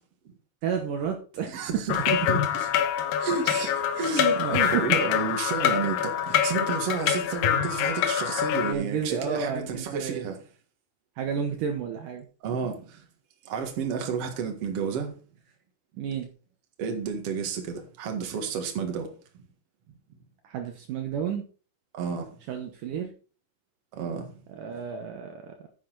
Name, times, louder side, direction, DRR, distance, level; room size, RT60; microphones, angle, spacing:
voice 1, 0.6-1.8 3.9-5.0 8.6-10.3 11.2-12.3 16.0-16.3 20.4-21.4 22.5-23.1 24.5-25.6, right 7 dB, 90° right, 1.8 m, -31 dB
voice 2, 1.5-2.7 3.2-10.4 12.4-13.0 13.4-15.1 16.8-19.1 21.9-22.3 23.9-24.3, right 6 dB, 60° right, 1.6 m, -31 dB
sound 1, 1.9-8.7, left 9 dB, 85° left, 2.0 m, -25 dB
9.8 x 8.4 x 4.0 m
omnidirectional pair, 5.4 m